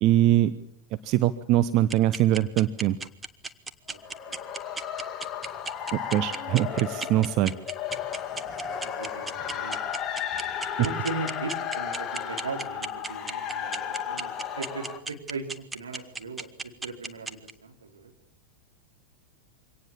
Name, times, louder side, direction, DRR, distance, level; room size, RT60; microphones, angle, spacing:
voice 1, 0.0-0.5 1.0-3.0 5.9-7.5, right 13 dB, 40° right, 12 dB, 0.9 m, -22 dB
sound 1, 1.9-17.5, right 4 dB, 10° right, 1.2 m, -34 dB
sound 2, 3.9-15.0, left 8 dB, 25° left, 2.3 m, -34 dB
voice 2, 8.6-9.8 10.8-18.1, right 4 dB, 70° right, 3 dB, 4.2 m, -38 dB
24.5 x 18.0 x 7.3 m, 0.69 s
figure-of-eight pair, 90°, 0 cm